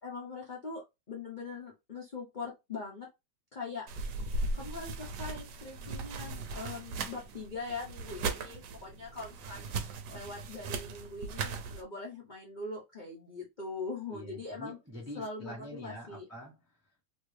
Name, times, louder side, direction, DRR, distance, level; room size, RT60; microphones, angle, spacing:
voice 1, 0.0-3.1 3.5-4.1 4.5-9.7 10.1-14.8 15.1-16.2, left 3 dB, 70° left, 0.4 m, -42 dB
sound 1, 3.9-11.8, right 3 dB, 70° right, 1.1 m, -38 dB
voice 2, 5.8-6.3 9.6-9.9 14.1-17.0, equal, 15° right, 0.5 m, -46 dB
2.9 x 2.7 x 3.2 m
omnidirectional pair, 2.1 m